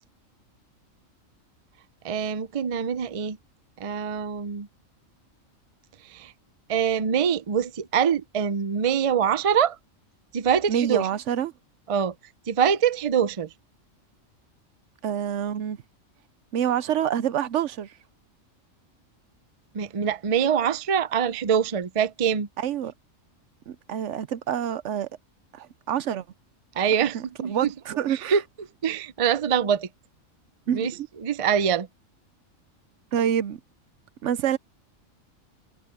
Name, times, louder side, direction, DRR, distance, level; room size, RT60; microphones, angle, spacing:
voice 1, 2.0-3.4 3.8-4.7 6.1-6.3 6.7-9.8 10.3-11.1 11.9-12.1 12.5-13.5 19.7-22.5 26.8-27.7 28.1-28.4 28.8-29.9 30.7-30.9 31.2-31.9, right 7 dB, 40° right, 0.5 m, -24 dB
voice 2, 10.7-11.5 15.0-15.8 16.5-17.9 22.6-22.9 23.7-25.1 25.5-26.2 27.1-28.4 30.7-31.1 33.1-33.6 34.2-34.6, right 9 dB, 65° right, 0.9 m, -27 dB
omnidirectional pair, 1.4 m